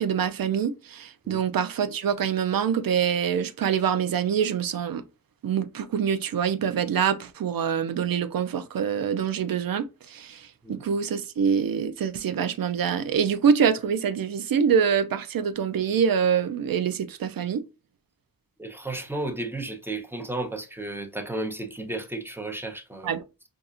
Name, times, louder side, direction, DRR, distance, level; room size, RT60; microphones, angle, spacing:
voice 1, 0.0-5.0 5.4-17.6 23.0-23.2, right 7 dB, 75° right, 0.5 m, -25 dB
voice 2, 18.6-23.2, right 2 dB, 5° right, 0.7 m, -33 dB
4.1 x 2.5 x 2.5 m
cardioid pair, 45°, 35 cm